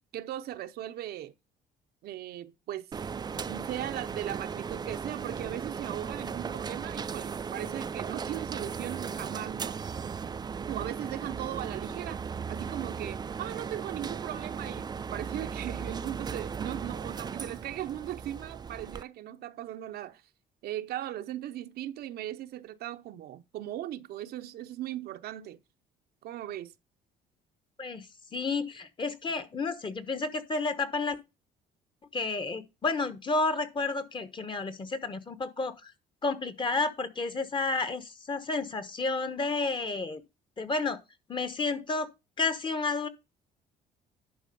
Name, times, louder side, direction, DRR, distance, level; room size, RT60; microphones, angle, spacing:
voice 1, 0.0-1.3 2.0-2.9 3.3-9.8 10.7-12.2 12.5-20.2 20.6-25.6 26.2-26.7, right 12 dB, 70° right, 0.7 m, -38 dB
sound 1, 2.9-19.0, right 6 dB, 25° right, 0.4 m, -37 dB
voice 2, 28.3-31.2 32.1-35.9 36.2-40.2 40.6-41.0 41.3-42.1 42.4-43.1, left 3 dB, 30° left, 1.1 m, -31 dB
11.0 x 4.2 x 5.3 m
cardioid pair, 110°, 17 cm